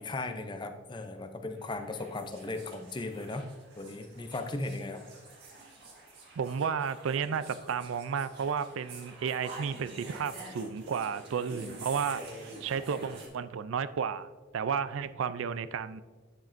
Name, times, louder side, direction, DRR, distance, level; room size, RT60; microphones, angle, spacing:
voice 1, 0.0-3.5 3.8-5.0, left 2 dB, 20° left, 7 dB, 0.5 m, -37 dB
sound 1, 1.6-13.3, right 2 dB, 50° right, 1.9 m, -48 dB
voice 2, 6.4-16.0, right 6 dB, 70° right, 14 dB, 0.4 m, -33 dB
9.7 x 7.3 x 2.6 m, 1.4 s
head